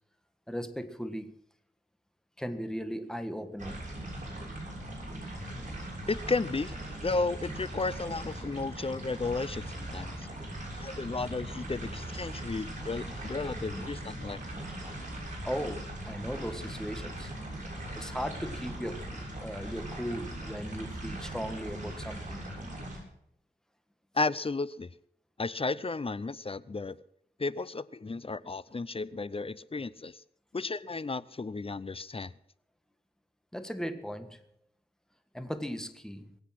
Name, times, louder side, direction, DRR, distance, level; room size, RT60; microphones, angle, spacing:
voice 1, 0.5-1.4 2.4-4.0 10.3-13.9 15.4-17.3 17.9-22.4 33.5-34.4 35.3-36.4, equal, 5° left, 8 dB, 1.5 m, -38 dB
sound 1, 3.6-23.0, right 1 dB, 45° right, 7.0 m, -40 dB
voice 2, 6.1-6.8 7.0-10.3 10.7-14.4 24.1-24.9 25.4-27.0 27.4-30.2 30.5-32.3, left 3 dB, 30° left, 18 dB, 0.6 m, -33 dB
22.5 x 8.2 x 6.1 m, 0.73 s
wide cardioid pair, 70°, 18 cm